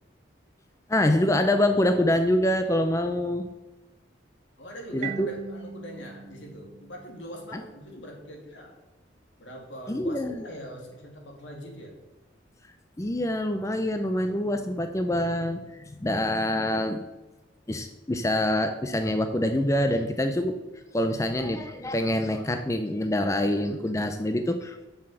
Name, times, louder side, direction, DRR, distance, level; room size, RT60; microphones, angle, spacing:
voice 1, 0.9-3.5 4.9-5.3 7.5-7.6 9.9-10.4 13.0-17.0 17.7-20.6 20.9-24.9, left 1 dB, 15° left, 7 dB, 0.5 m, -25 dB
voice 2, 4.6-8.7 9.4-11.9, equal, 80° left, 1 dB, 2.5 m, -42 dB
Marimba xylophone, 5.0-7.7, right 6 dB, 40° right, 0.4 m, -40 dB
6.9 x 6.9 x 7.7 m, 1.1 s
head